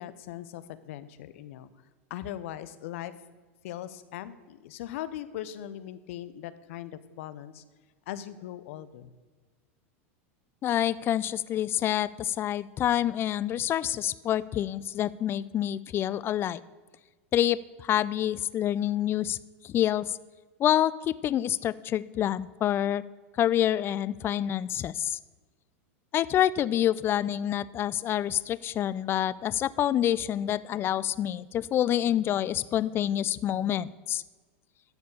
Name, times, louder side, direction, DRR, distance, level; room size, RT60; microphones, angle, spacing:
voice 1, 0.0-1.7 2.1-3.1 3.6-7.6 8.1-9.1, left 12 dB, 70° left, 14 dB, 0.7 m, -40 dB
voice 2, 10.6-16.6 17.3-19.4 19.6-20.2 20.6-23.0 23.4-25.2 26.1-34.2, left 11 dB, 30° left, 18 dB, 0.4 m, -27 dB
12.5 x 4.4 x 7.1 m, 1.3 s
hypercardioid pair, 115°, 7 cm